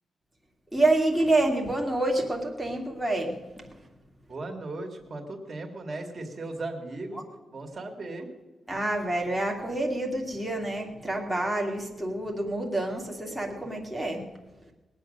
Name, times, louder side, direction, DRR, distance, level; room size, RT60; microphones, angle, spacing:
voice 1, 0.7-3.3 8.7-14.3, right 2 dB, ahead, 2 dB, 2.2 m, -27 dB
voice 2, 4.3-7.2 7.5-8.3, right 2 dB, 30° right, 3 dB, 2.1 m, -37 dB
21.0 x 8.7 x 6.4 m, 1.1 s
wide cardioid pair, 160°, 0 cm